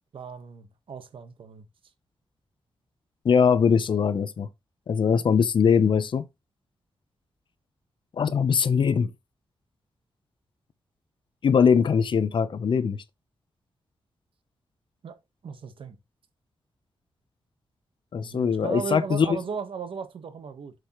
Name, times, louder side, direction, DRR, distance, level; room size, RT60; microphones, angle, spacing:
voice 1, 0.1-1.7 15.0-15.2 15.4-16.0 18.2-20.7, right 6 dB, 65° right, 1.3 m, -36 dB
voice 2, 3.2-4.5 4.9-6.2 8.2-9.1 11.4-13.0 18.1-19.4, left 6 dB, 60° left, 0.8 m, -21 dB
7.7 x 6.6 x 3.1 m
wide cardioid pair, 125°, 9 cm